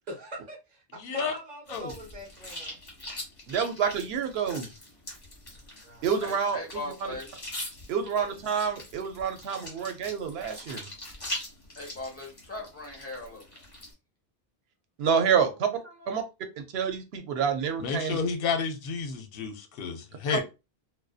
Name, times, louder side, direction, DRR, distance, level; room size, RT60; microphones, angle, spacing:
voice 1, 0.1-2.8 5.8-6.1 8.0-8.4 15.3-15.5 15.8-16.2, right 1 dB, 50° right, 0.7 m, -43 dB
voice 2, 1.0-1.3 1.7-1.9 17.8-20.4, left 5 dB, 65° left, 0.8 m, -31 dB
sound 1, 1.7-13.9, left 1 dB, 35° left, 1.1 m, -42 dB
voice 3, 3.5-4.7 6.0-7.1 7.9-10.9 15.0-15.7 16.1-16.2 16.6-18.2 20.3-20.4, right 7 dB, 80° right, 0.8 m, -28 dB
voice 4, 6.2-7.3 11.8-13.4, left 2 dB, 15° left, 0.8 m, -39 dB
2.5 x 2.1 x 2.3 m
omnidirectional pair, 1.0 m